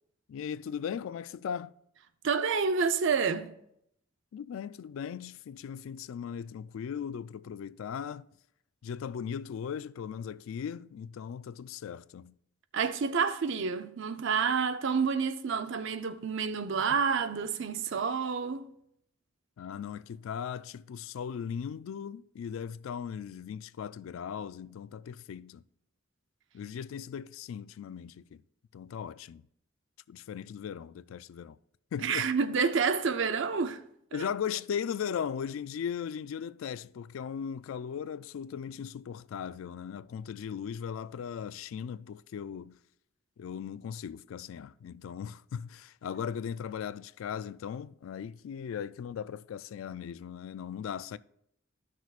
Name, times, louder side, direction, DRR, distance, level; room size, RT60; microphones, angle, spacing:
voice 1, 0.3-1.7 4.3-8.3 8.8-12.4 19.6-25.6 26.5-28.4 28.7-29.4 30.1-31.6 31.9-32.3 34.1-42.8 43.4-51.2, left 7 dB, 80° left, 0.3 m, -38 dB
voice 2, 2.2-3.5 12.7-18.6 32.0-33.8 34.1-34.2, right 5 dB, 65° right, 0.5 m, -29 dB
13.5 x 6.1 x 2.4 m
head